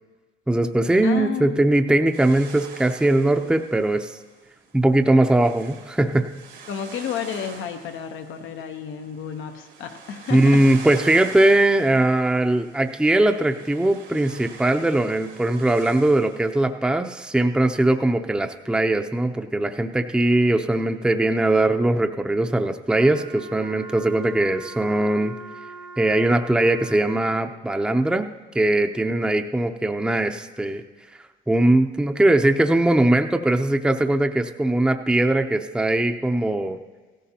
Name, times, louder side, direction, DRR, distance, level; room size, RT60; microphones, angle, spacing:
voice 1, 0.5-4.2 4.7-6.3 10.3-25.3 26.0-28.3 28.5-30.8 31.5-36.8, right 1 dB, 5° right, 5 dB, 0.6 m, -20 dB
voice 2, 1.0-1.6 6.7-10.6, left 8 dB, 80° left, 7 dB, 0.9 m, -31 dB
sound 1, 2.1-16.6, right 5 dB, 90° right, 3.0 m, -45 dB
Wind instrument woodwind instrument, 22.9-27.5, right 4 dB, 70° right, 1.5 m, -41 dB
16.5 x 14.0 x 2.8 m, 1.4 s
cardioid pair, 90°, 20 cm